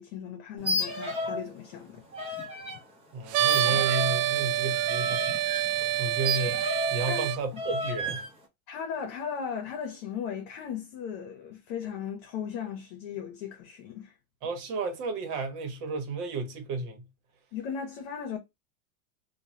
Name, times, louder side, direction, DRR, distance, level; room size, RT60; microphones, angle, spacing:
voice 1, 0.0-2.0 7.1-7.3 8.7-14.1 17.5-18.4, left 7 dB, 55° left, 0.9 m, -37 dB
sound 1, 0.6-1.5 1.7-2.8 3.5-7.0 7.6-8.3, equal, 15° right, 1.0 m, -33 dB
voice 2, 3.1-5.3 6.0-6.6 6.9-8.3 14.4-17.1, right 3 dB, 45° right, 1.1 m, -32 dB
sound 2, 3.3-7.4, right 12 dB, 70° right, 0.5 m, -27 dB
3.0 x 2.4 x 2.8 m
supercardioid pair, 135°, 41 cm